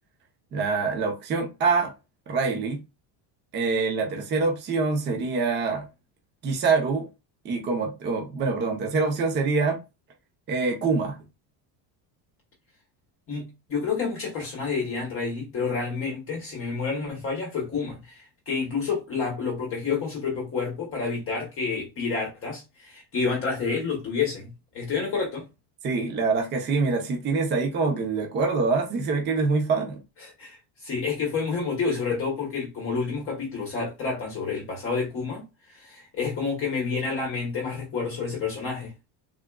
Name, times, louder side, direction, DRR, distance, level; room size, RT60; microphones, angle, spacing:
voice 1, 0.5-1.9 2.3-2.8 3.5-5.9 6.4-7.1 7.4-9.8 10.5-11.2 25.8-30.0, right 4 dB, 25° right, 0.6 m, -25 dB
voice 2, 13.3-25.5 30.2-38.9, left 5 dB, 25° left, 0.9 m, -29 dB
3.7 x 3.5 x 2.2 m
cardioid pair, 180°, 48 cm